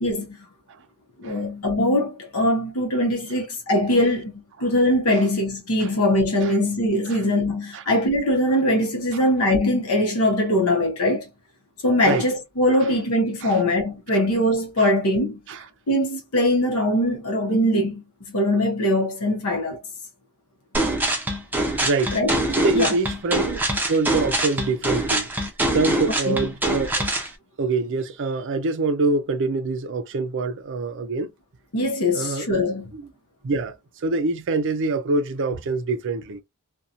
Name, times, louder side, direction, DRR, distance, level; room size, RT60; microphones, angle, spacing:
voice 1, 0.0-0.4 1.2-4.3 4.6-11.3 11.8-15.4 15.9-19.8 22.1-22.3 22.7-22.9 26.3-26.5 31.7-32.9, left 1 dB, 70° left, 0.8 m, -22 dB
sound 1, 20.7-27.3, right 1 dB, 10° right, 0.6 m, -24 dB
voice 2, 21.8-22.2 22.6-23.6 23.9-25.3 25.7-27.0 27.6-31.3 32.1-32.5 32.9-33.1 33.4-33.8 34.0-36.4, right 3 dB, 55° right, 0.4 m, -25 dB
2.7 x 2.2 x 2.4 m
head